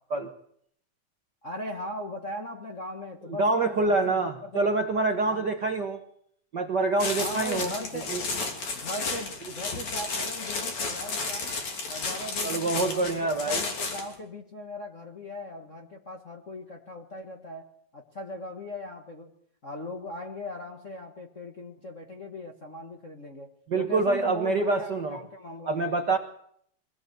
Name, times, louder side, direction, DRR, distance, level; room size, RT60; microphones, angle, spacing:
voice 1, 1.4-4.7 5.3-5.5 7.2-8.3 8.7-11.6 11.9-19.3 19.6-25.9, left 1 dB, 35° left, 1 dB, 1.3 m, -39 dB
voice 2, 3.4-6.0 6.5-7.7 8.1-8.2 12.4-13.6 23.7-25.2 25.7-26.2, right 3 dB, 50° right, 5 dB, 1.4 m, -26 dB
sound 1, 7.0-14.1, left 4 dB, 65° left, 4.3 m, -32 dB
23.0 x 17.0 x 8.0 m, 0.67 s
omnidirectional pair, 3.4 m